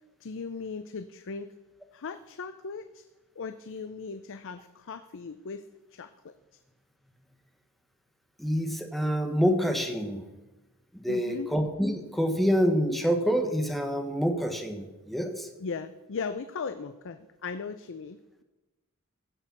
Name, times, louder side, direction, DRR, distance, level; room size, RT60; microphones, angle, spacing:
voice 1, 0.2-1.5 1.9-3.0 3.4-5.6 5.9-6.3 11.1-11.5 15.6-18.4, left 5 dB, 60° left, 10 dB, 0.5 m, -38 dB
voice 2, 8.4-10.2 10.9-15.5, equal, ahead, 5 dB, 1.2 m, -27 dB
15.5 x 6.7 x 6.0 m, 1.1 s
head